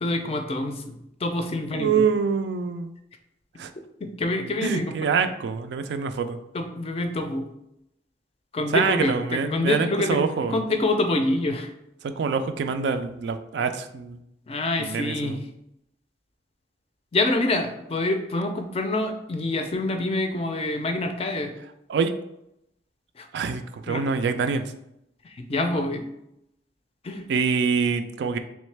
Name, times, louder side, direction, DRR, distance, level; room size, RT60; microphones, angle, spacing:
voice 1, 0.0-0.9 1.2-2.0 4.0-4.9 6.5-7.4 8.5-11.7 14.5-15.4 17.1-21.5 23.2-23.3 23.9-24.1 25.4-26.0 27.0-27.3, left 2 dB, 35° left, 6 dB, 0.4 m, -26 dB
voice 2, 1.7-2.9 3.6-3.7 4.6-6.4 8.7-10.6 12.0-14.2 14.8-15.4 21.9-22.1 23.3-24.6 27.3-28.4, right 5 dB, 70° right, 9 dB, 0.3 m, -25 dB
3.6 x 3.1 x 3.2 m, 0.82 s
head